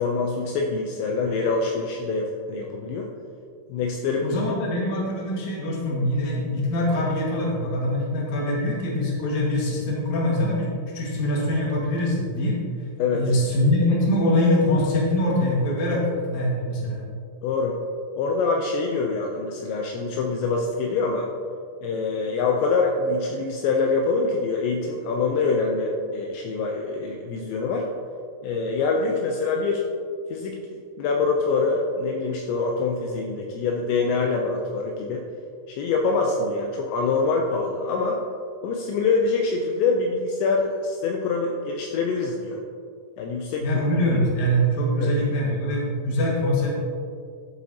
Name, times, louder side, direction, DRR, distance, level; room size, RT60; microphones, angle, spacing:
voice 1, 0.0-3.1 3.7-4.4 13.0-13.2 15.9-16.0 17.4-17.8 18.2-21.3 21.8-27.9 28.4-29.8 30.3-35.2 35.7-38.2 38.6-42.6 43.2-43.8 45.0-45.1 46.7-46.8, left 4 dB, 80° left, 1 dB, 2.7 m, -25 dB
voice 2, 4.2-10.7 10.9-12.6 13.1-17.0 43.6-46.7, left 1 dB, 50° left, -4 dB, 2.5 m, -23 dB
12.0 x 7.5 x 2.8 m, 2.2 s
omnidirectional pair, 5.4 m